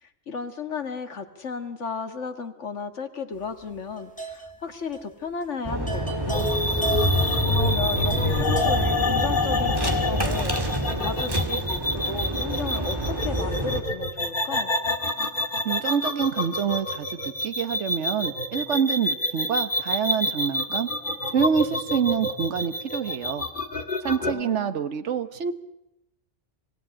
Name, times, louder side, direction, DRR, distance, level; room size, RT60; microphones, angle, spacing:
voice 1, 0.0-6.5 7.5-10.5 11.0-14.8 24.2-24.8, left 5 dB, 75° left, 7 dB, 2.1 m, -34 dB
sound 1, 3.6-4.7 4.9-5.1 5.5-5.6 5.9-8.9, right 4 dB, 5° left, 3.1 m, -35 dB
sound 2, 5.6-13.8, right 1 dB, 20° right, 2.2 m, -28 dB
sound 3, 6.3-24.4, left 2 dB, 45° left, 1.9 m, -27 dB
voice 2, 15.6-20.9 21.3-23.5 24.0-25.5, right 7 dB, 75° right, 11 dB, 1.4 m, -26 dB
25.5 x 17.0 x 9.9 m, 0.89 s
omnidirectional pair, 1.2 m